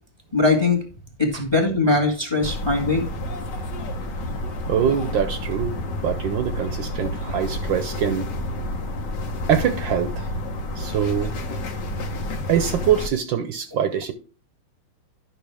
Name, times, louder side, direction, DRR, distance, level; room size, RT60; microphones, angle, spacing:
voice 1, 0.3-0.8 1.2-3.0, left 3 dB, 15° left, 1.4 m, -20 dB
sound 1, 2.4-13.1, left 1 dB, 55° left, 1.7 m, -29 dB
voice 2, 4.7-5.8 6.0-8.3 9.5-10.3 10.8-11.3 12.5-14.1, right 8 dB, 70° right, 1.4 m, -23 dB
11.5 x 6.0 x 3.4 m
omnidirectional pair, 2.4 m